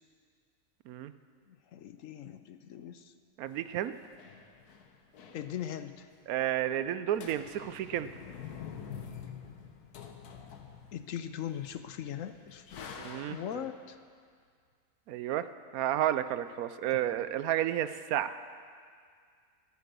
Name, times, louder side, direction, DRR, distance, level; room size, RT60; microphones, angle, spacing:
voice 1, 1.5-3.1 5.3-6.1 10.9-13.0 13.3-14.0, left 10 dB, 70° left, 11 dB, 0.9 m, -40 dB
voice 2, 3.4-3.9 6.3-8.1 13.0-13.6 15.1-15.5 15.7-18.3, right 11 dB, 75° right, 13 dB, 1.0 m, -31 dB
sound 1, 3.5-6.0 6.2-6.3 6.6-6.9 7.2-13.8, left 7 dB, 85° left, 1.5 m, -47 dB
13.5 x 11.5 x 6.7 m, 2.1 s
omnidirectional pair, 1.6 m